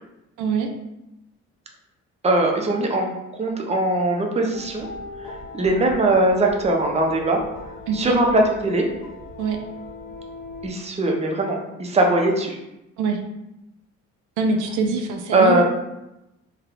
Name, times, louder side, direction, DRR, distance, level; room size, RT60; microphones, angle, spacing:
voice 1, 0.4-0.7 7.9-8.2 9.4-9.6 13.0-13.2 14.4-15.6, right 4 dB, 80° right, 4 dB, 0.5 m, -23 dB
voice 2, 2.2-4.9 5.2-7.4 7.9-8.9 10.6-12.6 15.3-15.6, right 2 dB, 20° right, 1 dB, 0.5 m, -20 dB
sound 1, 4.5-10.7, left 2 dB, 85° left, 0.7 m, -38 dB
3.1 x 3.1 x 2.5 m, 0.93 s
cardioid pair, 90°, 30 cm